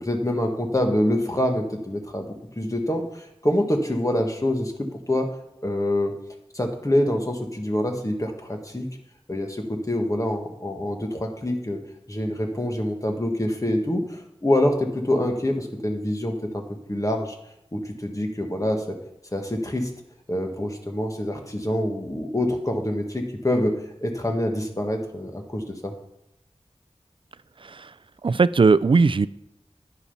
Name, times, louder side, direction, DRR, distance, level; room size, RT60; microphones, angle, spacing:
voice 1, 0.0-2.3 2.6-5.3 5.6-6.1 6.5-8.9 9.3-11.8 12.1-17.4 17.7-19.0 19.3-19.9 20.3-23.7 24.0-25.9, left 1 dB, 30° left, 3 dB, 1.8 m, -26 dB
voice 2, 28.2-29.3, right 4 dB, 50° right, 18 dB, 0.4 m, -18 dB
10.5 x 7.0 x 5.7 m, 0.84 s
wide cardioid pair, 50°, 11 cm